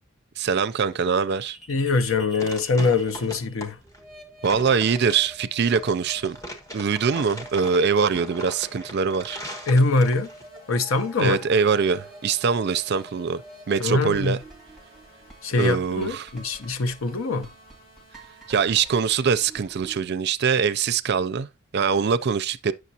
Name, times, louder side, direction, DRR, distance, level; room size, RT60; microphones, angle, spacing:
voice 1, 0.4-1.6 4.4-6.4 6.7-9.4 11.2-13.4 13.7-14.4 15.6-16.3 18.5-22.7, right 6 dB, 50° right, 0.4 m, -23 dB
sound 1, 1.3-20.0, right 1 dB, ahead, 1.6 m, -47 dB
voice 2, 1.7-3.8 9.7-10.3 10.7-11.5 13.8-14.4 15.4-17.5, left 3 dB, 75° left, 0.7 m, -23 dB
sound 2, 2.2-10.5, equal, 15° left, 1.3 m, -40 dB
sound 3, 9.9-18.9, right 1 dB, 50° left, 4.8 m, -55 dB
9.3 x 6.5 x 2.8 m
head